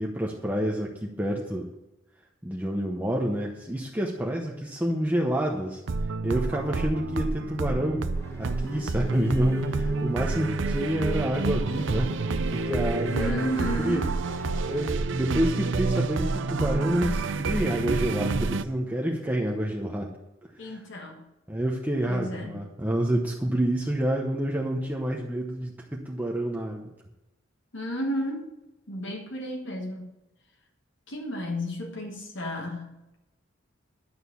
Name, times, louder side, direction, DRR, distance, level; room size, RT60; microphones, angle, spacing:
voice 1, 0.0-1.7 2.4-8.1 8.4-12.1 12.5-13.5 13.8-14.0 14.7-20.2 20.5-20.8 21.5-26.8, right 1 dB, 10° right, -2 dB, 0.9 m, -28 dB
sound 1, 5.9-18.6, right 3 dB, 65° right, 0.6 m, -29 dB
sound 2, 8.1-14.9, left 2 dB, 15° left, 1.3 m, -39 dB
voice 2, 13.1-14.1 20.6-21.3 22.0-22.7 27.7-28.5 28.9-30.2 31.1-33.0, equal, 65° left, 1 dB, 1.5 m, -33 dB
11.5 x 6.6 x 6.9 m, 0.99 s
head